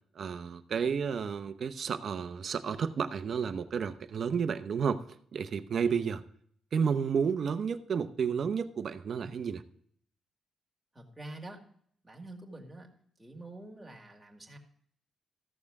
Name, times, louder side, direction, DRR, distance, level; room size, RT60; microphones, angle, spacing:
voice 1, 0.2-5.0 5.3-6.2 6.7-9.6, right 6 dB, 50° right, 10 dB, 0.7 m, -31 dB
voice 2, 10.9-11.6 12.0-12.9 13.2-14.6, right 2 dB, 5° right, 0 dB, 2.1 m, -46 dB
14.5 x 6.8 x 3.5 m, 0.63 s
cardioid pair, 130°, 0 cm